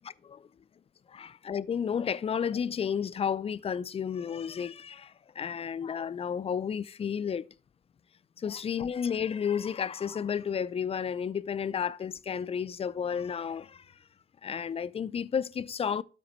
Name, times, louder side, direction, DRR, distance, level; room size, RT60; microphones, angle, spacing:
voice 1, 1.1-7.5 8.4-13.9 14.4-16.0, left 7 dB, 30° left, 0.4 m, -32 dB
12.5 x 4.9 x 3.1 m
cardioid pair, 90°, 20 cm